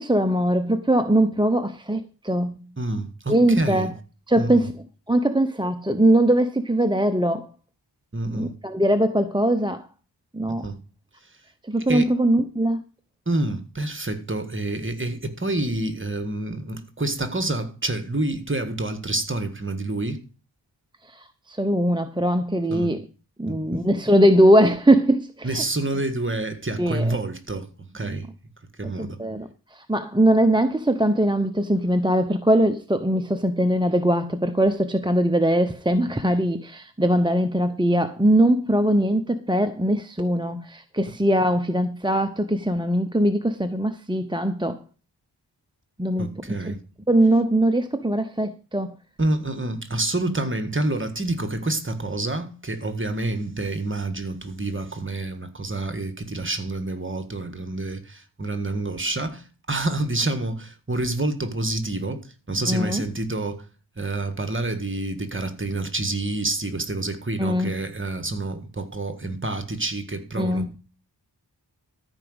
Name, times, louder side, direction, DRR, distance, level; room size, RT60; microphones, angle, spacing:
voice 1, 0.0-2.7 3.3-3.9 4.3-4.7 5.1-7.5 8.3-9.9 10.3-10.6 11.7-12.8 21.1-23.0 23.4-25.6 26.8-27.2 28.0-28.2 28.8-44.8 46.0-46.7 47.1-48.9 62.7-63.0 67.4-67.7 70.4-70.7, right 1 dB, 10° right, 0.9 m, -21 dB
voice 2, 2.8-3.9 4.4-4.7 8.1-8.5 10.5-10.8 11.9-12.1 13.2-20.2 22.7-22.9 23.5-23.8 25.4-28.3 28.8-29.2 46.2-46.8 49.2-63.6 64.0-70.8, right 2 dB, 30° right, 1.7 m, -28 dB
13.5 x 5.0 x 8.0 m
wide cardioid pair, 65°, 42 cm